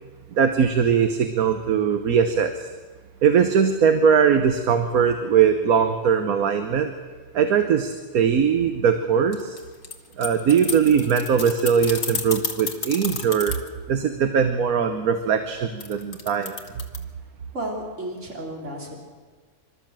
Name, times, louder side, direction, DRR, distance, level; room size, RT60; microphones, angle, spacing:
voice 1, 0.4-2.7 3.2-6.9 7.3-9.6 10.2-13.6 13.9-16.6, right 7 dB, 85° right, 7 dB, 1.5 m, -20 dB
sound 1, 9.3-13.7 15.8-17.0, left 5 dB, 65° left, 1.9 m, -31 dB
voice 2, 17.5-19.0, right 1 dB, 55° right, -1 dB, 3.8 m, -32 dB
27.5 x 12.5 x 7.5 m, 1.4 s
omnidirectional pair, 1.5 m